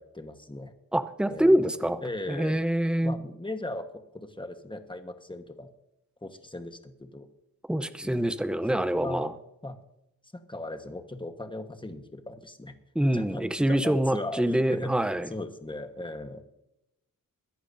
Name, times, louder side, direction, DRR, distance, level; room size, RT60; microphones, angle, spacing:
voice 1, 0.0-0.7 1.3-1.6 2.0-2.6 3.0-5.7 6.2-7.3 8.0-8.3 9.0-9.3 9.6-9.8 10.3-12.7 13.1-16.4, left 2 dB, 15° left, 7 dB, 1.3 m, -38 dB
voice 2, 0.9-2.0 2.3-3.1 7.7-9.3 12.9-15.3, right 1 dB, 5° right, 10 dB, 0.7 m, -25 dB
22.5 x 11.0 x 2.7 m, 0.86 s
wide cardioid pair, 100°, 34 cm